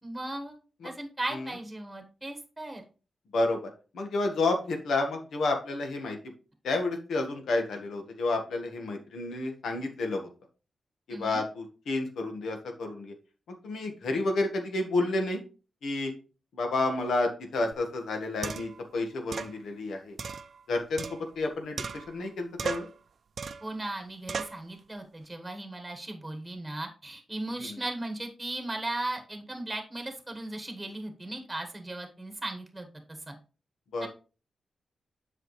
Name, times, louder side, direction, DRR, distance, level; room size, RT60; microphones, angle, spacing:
voice 1, 0.0-0.6 0.8-2.8 11.1-11.4 23.6-32.9 33.3-33.4 34.0-34.1, right 1 dB, 10° right, 5 dB, 1.3 m, -37 dB
voice 2, 3.3-6.2 6.6-10.3 11.1-13.1 13.5-15.4 15.8-16.1 16.5-20.2 20.7-22.9 27.6-27.8 33.9-34.1, left 2 dB, 90° left, 3 dB, 1.4 m, -30 dB
sound 1, 17.7-17.8 18.4-18.8 19.3-19.5 20.2-21.5 21.8-22.3 22.6-23.0 23.4-23.7 24.3-24.6, right 5 dB, 55° right, 0.5 m, -36 dB
7.9 x 5.8 x 3.2 m, 0.35 s
wide cardioid pair, 110°, 0 cm